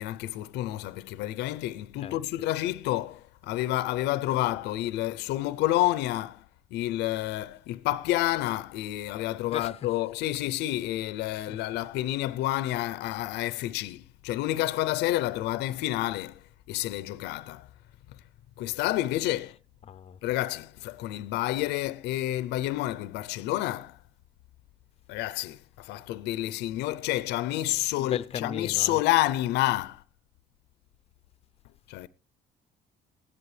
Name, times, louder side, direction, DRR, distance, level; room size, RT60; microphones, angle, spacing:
voice 1, 0.0-16.4 16.7-17.7 18.6-19.6 20.2-24.0 25.1-30.0 31.9-32.1, left 15 dB, 85° left, 0.5 m, -29 dB
voice 2, 19.9-20.2 28.0-29.0, left 8 dB, 35° left, 0.5 m, -36 dB
15.5 x 11.0 x 3.2 m
cardioid pair, 110°, 17 cm